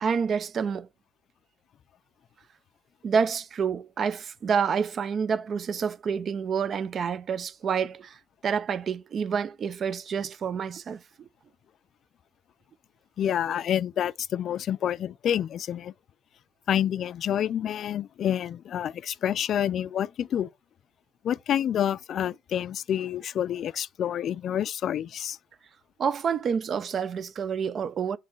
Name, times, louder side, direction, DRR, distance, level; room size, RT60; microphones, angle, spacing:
voice 1, 0.0-0.9 3.0-11.0 26.0-28.2, right 6 dB, 50° right, 0.4 m, -28 dB
voice 2, 13.2-15.9 16.7-20.5 21.2-25.4, left 10 dB, 60° left, 0.3 m, -28 dB
6.5 x 3.7 x 4.6 m
cardioid pair, 95°, 0 cm